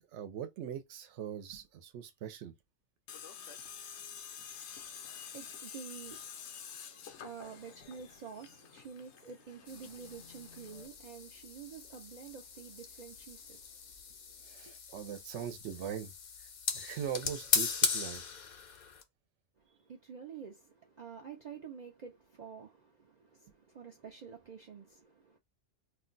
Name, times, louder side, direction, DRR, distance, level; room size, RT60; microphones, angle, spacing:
voice 1, 0.1-2.5 14.5-16.1 16.7-18.2, right 9 dB, 75° right, 0.9 m, -41 dB
Tools, 3.1-10.9, left 7 dB, 75° left, 0.9 m, -49 dB
voice 2, 4.7-14.4 14.7-14.8 19.6-25.4, right 6 dB, 55° right, 0.5 m, -49 dB
sound 1, 9.7-19.0, left 6 dB, 55° left, 0.5 m, -38 dB
2.4 x 2.2 x 3.8 m
omnidirectional pair, 1.2 m